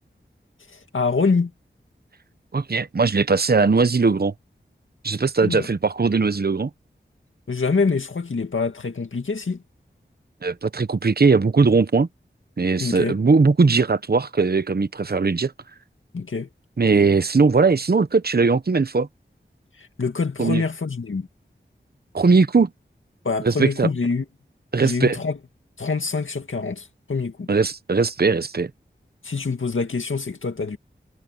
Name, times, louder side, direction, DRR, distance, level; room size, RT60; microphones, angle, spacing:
voice 1, 0.7-1.5 5.4-5.7 7.5-9.6 12.8-13.2 16.1-16.5 19.8-21.3 23.2-24.2 24.8-25.4 25.8-27.5 29.2-30.8, left 4 dB, 85° left, 2.1 m, -25 dB
voice 2, 2.5-4.3 5.0-6.7 10.4-12.1 12.6-15.5 16.8-19.1 20.4-20.6 22.1-22.7 23.4-23.9 24.7-25.2 27.5-28.7, right 4 dB, 50° right, 0.9 m, -19 dB
wide cardioid pair, 40°, 20 cm